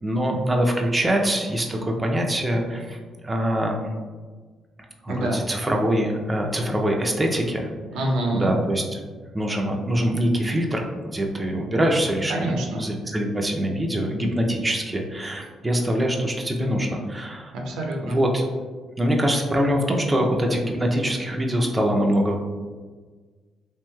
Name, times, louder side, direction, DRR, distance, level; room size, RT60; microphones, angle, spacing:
voice 1, 0.0-3.0 3.2-3.8 5.0-7.7 8.3-8.8 9.3-10.8 11.1-17.5 18.0-18.5 19.0-22.4, equal, 15° right, 1 dB, 0.4 m, -24 dB
voice 2, 5.1-5.4 7.9-8.5 12.3-12.8 17.5-18.2, right 1 dB, 90° right, 0 dB, 0.5 m, -26 dB
3.0 x 3.0 x 2.2 m, 1.4 s
cardioid pair, 90°, 0 cm